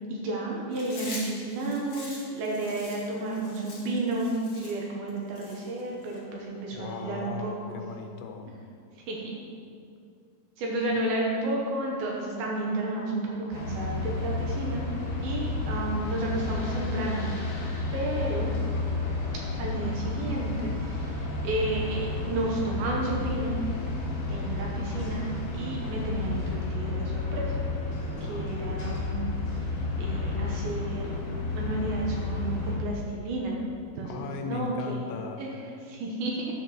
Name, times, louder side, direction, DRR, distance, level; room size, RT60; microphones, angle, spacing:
voice 1, 0.1-7.8 9.1-9.3 10.6-14.9 15.2-17.3 17.9-18.6 19.6-23.6 24.1-25.3 25.5-27.6 28.2-29.3 30.0-31.1 31.5-33.6 33.9-35.1 35.4-35.5 35.8-36.4, right 2 dB, 75° right, -2 dB, 2.6 m, -32 dB
Chewing mastication, 0.7-6.2, left 2 dB, 40° left, 2.2 m, -43 dB
voice 2, 6.7-8.5 28.2-28.6 34.0-35.5, left 5 dB, 90° left, 4 dB, 2.8 m, -37 dB
sound 1, 13.5-32.8, left 3 dB, 60° left, 2.5 m, -31 dB
10.5 x 7.3 x 3.0 m, 2.3 s
omnidirectional pair, 4.8 m